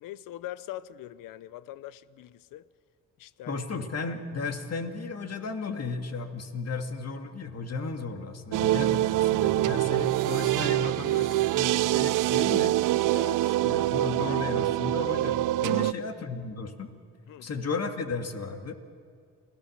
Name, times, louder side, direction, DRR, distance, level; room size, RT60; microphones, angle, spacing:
voice 1, 0.0-2.6 3.2-3.6 13.1-13.5 15.6-16.0 17.3-17.5, left 13 dB, 85° left, 0.7 m, -41 dB
voice 2, 3.5-12.8 13.6-16.9 17.4-18.7, left 4 dB, 50° left, 2.4 m, -34 dB
sound 1, 8.5-15.9, right 15 dB, 75° right, 0.5 m, -25 dB
29.0 x 19.0 x 6.7 m
supercardioid pair, 55°, 32 cm